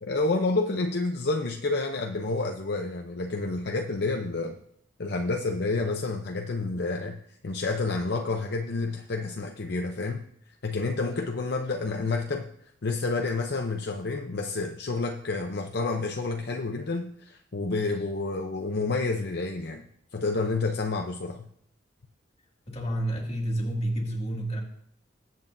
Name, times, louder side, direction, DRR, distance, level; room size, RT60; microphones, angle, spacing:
voice 1, 0.0-4.6 5.0-10.2 10.6-12.5 12.8-19.8 20.1-21.5, left 3 dB, 60° left, 3 dB, 0.7 m, -29 dB
voice 2, 22.7-24.6, right 1 dB, 35° left, -1 dB, 2.1 m, -29 dB
21.0 x 7.8 x 2.7 m, 0.70 s
head